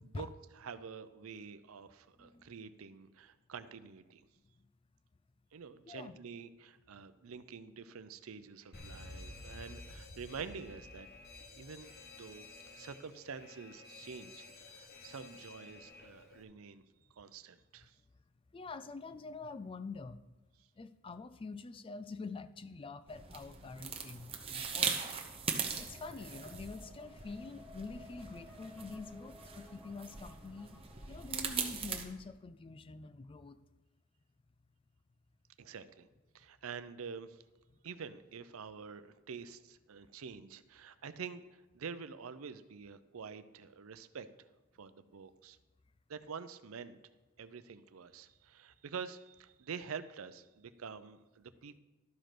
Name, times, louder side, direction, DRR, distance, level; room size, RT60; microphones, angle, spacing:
voice 1, 0.5-4.2 5.5-11.1 11.6-16.8 17.1-18.0 35.6-36.1 36.3-37.4 37.8-44.5 44.8-45.6 46.1-47.0 47.4-51.8, right 6 dB, 85° right, 13 dB, 0.5 m, -47 dB
voice 2, 2.2-2.5 5.8-6.2 18.5-20.2 20.8-25.2 25.7-30.8 31.1-33.6, left 3 dB, 25° left, 14 dB, 0.3 m, -46 dB
Alarm, 8.7-16.4, left 2 dB, 50° left, 1.1 m, -52 dB
sound 1, 23.1-32.0, right 6 dB, 25° right, 0.9 m, -40 dB
sound 2, 25.6-31.9, left 2 dB, 5° left, 0.7 m, -58 dB
12.0 x 5.1 x 5.9 m, 1.1 s
head